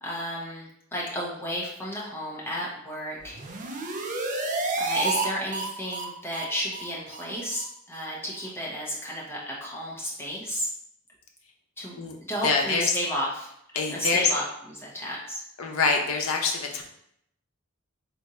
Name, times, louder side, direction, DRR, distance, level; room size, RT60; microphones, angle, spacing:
voice 1, 0.0-3.4 4.8-10.7 11.8-11.9 12.3-13.5 13.9-15.4, equal, 10° left, -5 dB, 1.0 m, -32 dB
sound 1, 3.2-5.3 5.5-5.6 5.9-6.0 6.3-6.4 6.7-6.8 7.1-7.2 7.5-7.6 7.9-8.0 8.3-8.4, right 3 dB, 40° right, 0.5 m, -30 dB
voice 2, 12.4-13.0 13.7-14.3 15.6-16.8, left 4 dB, 85° left, 2 dB, 0.7 m, -25 dB
3.4 x 2.6 x 4.2 m, 0.75 s
head